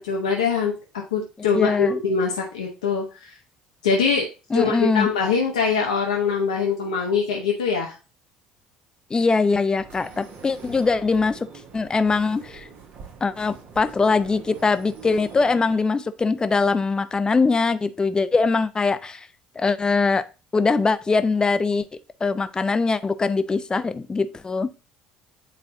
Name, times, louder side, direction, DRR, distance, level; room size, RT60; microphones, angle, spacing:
voice 1, 0.0-3.3 3.8-4.3 4.5-8.0, left 5 dB, 75° left, 0 dB, 0.9 m, -23 dB
voice 2, 1.5-2.0 4.5-5.1 9.1-11.5 11.7-12.7 13.2-19.3 19.6-20.2 20.5-21.9 22.2-24.7, left 4 dB, 20° left, 13 dB, 0.6 m, -22 dB
sound 1, 9.8-15.9, right 5 dB, 50° right, 1.2 m, -44 dB
8.6 x 4.3 x 2.6 m, 0.31 s
figure-of-eight pair, 55°, 4 cm